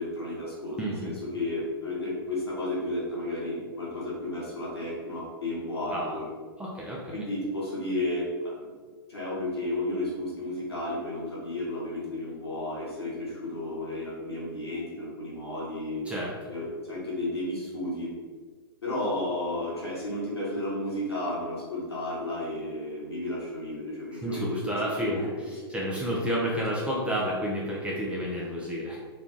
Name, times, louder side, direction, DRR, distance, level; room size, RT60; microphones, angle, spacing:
voice 1, 0.0-6.3 7.1-8.7 9.1-16.0 16.5-18.1 18.8-25.5 26.0-26.2, left 1 dB, 85° left, -5 dB, 1.3 m, -33 dB
voice 2, 0.8-1.2 5.9-6.2 6.6-7.1 16.1-16.3 24.2-29.0, equal, 10° right, -4 dB, 0.5 m, -30 dB
3.3 x 2.3 x 3.7 m, 1.5 s
hypercardioid pair, 110°, 13 cm